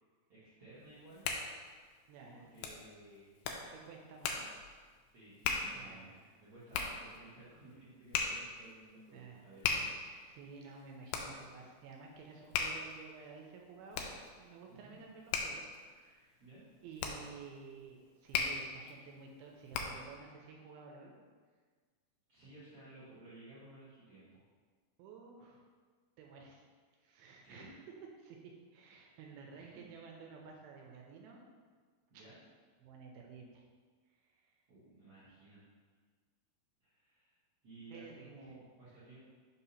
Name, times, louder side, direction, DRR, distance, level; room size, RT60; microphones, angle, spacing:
voice 1, 0.3-1.3 2.2-3.4 5.1-9.8 14.7-15.0 16.4-16.6 22.3-24.4 27.4-27.7 29.5-29.8 32.1-32.4 34.7-35.6 36.8-37.3 37.6-39.2, right 2 dB, 60° right, -12 dB, 1.5 m, -56 dB
Hands, 0.8-20.2, left 5 dB, 80° left, 2.2 m, -40 dB
voice 2, 2.1-2.5 3.7-4.5 5.7-6.3 9.1-9.5 10.0-16.4 16.8-21.1 25.0-25.7 26.2-26.7 27.0-27.9 28.2-28.4 28.7-31.5 32.1-32.3 32.8-33.7 34.1-34.6 37.9-38.5, right 5 dB, 80° right, 0 dB, 2.3 m, -53 dB
6.1 x 2.8 x 5.5 m, 1.5 s
omnidirectional pair, 4.6 m